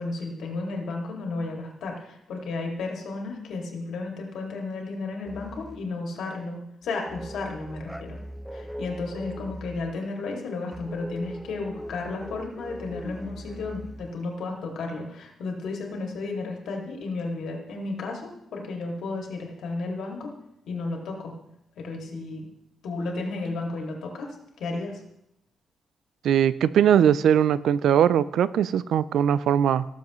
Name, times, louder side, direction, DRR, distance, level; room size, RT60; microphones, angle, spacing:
voice 1, 0.0-8.2 8.5-20.3 20.7-21.3 21.8-22.4 22.8-25.0, left 3 dB, 80° left, 1 dB, 2.2 m, -33 dB
sound 1, 5.2-5.9 6.8-10.0 10.7-14.2, equal, ahead, 0.3 m, -40 dB
voice 2, 26.2-29.9, right 9 dB, 80° right, 17 dB, 0.3 m, -20 dB
18.0 x 7.3 x 3.1 m, 0.79 s
wide cardioid pair, 165°, 0 cm